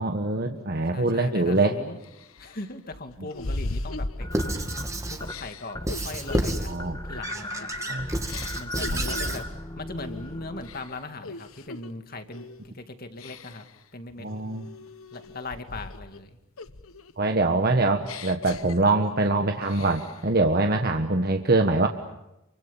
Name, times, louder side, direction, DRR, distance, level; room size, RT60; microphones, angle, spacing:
voice 1, 0.0-1.8 6.7-7.0 7.9-8.1 8.9-9.0 14.2-14.7 17.2-21.9, right 2 dB, 50° right, 5 dB, 1.4 m, -24 dB
voice 2, 0.9-2.0 2.4-4.5 5.1-6.7 7.1-7.7 8.5-9.4 9.8-13.6 13.9-14.3 15.1-16.4, left 2 dB, 45° left, 7 dB, 2.4 m, -39 dB
sound 1, 1.4-1.5 2.0-4.8 5.2-7.9 8.3-9.5 10.0-10.3 10.6-11.9 12.3-12.7 13.2-13.8 14.3-16.2 16.6-19.3 19.6-20.3, left 2 dB, 85° left, 1.2 m, -38 dB
sound 2, 4.2-5.4 5.7-6.0 6.3-11.0, left 1 dB, 20° left, 1.9 m, -37 dB
Squeak / Writing, 4.3-5.2 5.9-6.7 7.2-9.4, right 1 dB, 15° right, 2.2 m, -30 dB
28.5 x 24.5 x 7.3 m, 0.92 s
head